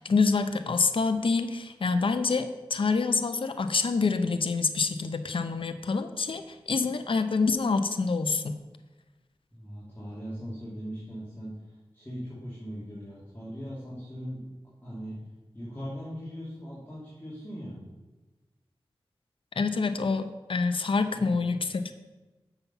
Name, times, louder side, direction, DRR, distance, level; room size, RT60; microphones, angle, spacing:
voice 1, 0.0-8.6 19.6-21.9, left 4 dB, 60° left, 9 dB, 0.6 m, -27 dB
voice 2, 9.5-11.5 11.9-14.4 14.8-15.2 15.5-17.8 21.3-21.4, equal, 20° left, -10 dB, 2.8 m, -39 dB
7.0 x 5.9 x 5.5 m, 1.2 s
cardioid pair, 45°, 10 cm